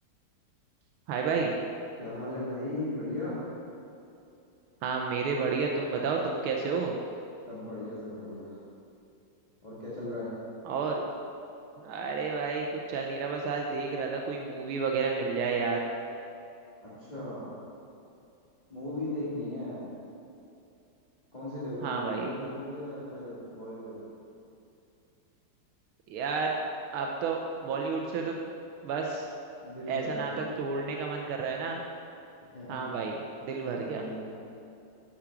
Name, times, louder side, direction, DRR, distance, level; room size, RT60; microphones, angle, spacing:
voice 1, 1.1-1.5 4.8-7.0 10.6-11.0 11.8-15.8 21.8-22.3 26.1-26.5 26.9-28.4 28.8-29.3 29.9-31.8 32.7-34.0, right 4 dB, 85° right, 1 dB, 1.6 m, -31 dB
voice 2, 2.0-3.4 7.5-8.6 9.6-10.3 16.8-17.6 18.7-19.9 21.3-24.0 29.6-30.5 32.5-33.0 33.7-34.3, left 1 dB, 20° left, -10 dB, 2.0 m, -37 dB
8.7 x 5.9 x 5.8 m, 2.7 s
omnidirectional pair, 2.3 m